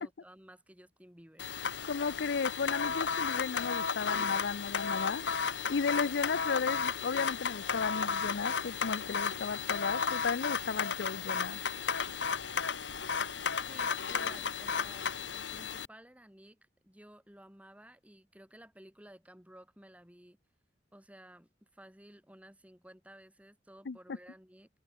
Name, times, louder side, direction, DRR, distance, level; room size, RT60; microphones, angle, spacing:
voice 1, 0.0-1.5 13.7-20.4 20.9-24.7, right 1 dB, 10° right, 2.8 m, -55 dB
sound 1, 1.4-15.9, left 6 dB, 90° left, 1.5 m, -34 dB
voice 2, 1.8-5.4 5.7-11.6 23.9-24.0, left 5 dB, 75° left, 0.6 m, -34 dB
head